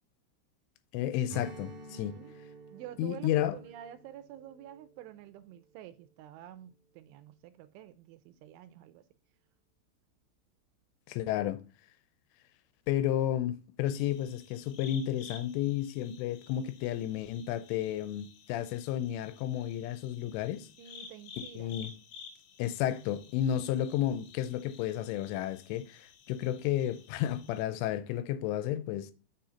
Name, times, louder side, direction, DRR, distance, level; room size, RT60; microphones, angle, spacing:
voice 1, 0.9-2.1 3.0-3.6 11.1-11.6 12.9-20.7 21.6-21.9 22.6-29.1, left 11 dB, 85° left, 3.1 m, -32 dB
Strum, 1.3-6.1, right 4 dB, 55° right, 2.8 m, -51 dB
voice 2, 1.9-2.3 2.7-9.0 20.8-21.8, right 11 dB, 80° right, 2.9 m, -49 dB
sound 1, 13.9-27.6, left 6 dB, 70° left, 2.8 m, -53 dB
7.1 x 6.1 x 3.8 m
omnidirectional pair, 5.7 m